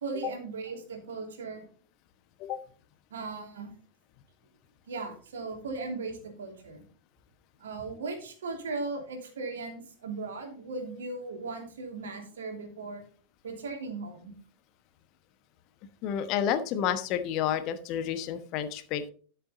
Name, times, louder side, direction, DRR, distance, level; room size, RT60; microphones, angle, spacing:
voice 1, 0.0-1.7 3.1-3.7 4.9-6.8 7.6-13.0 13.4-14.3, right 3 dB, 65° right, 3 dB, 2.9 m, -37 dB
voice 2, 16.0-19.1, left 9 dB, 40° left, 10 dB, 1.2 m, -30 dB
12.5 x 6.9 x 4.1 m, 0.42 s
figure-of-eight pair, 90°, 0 cm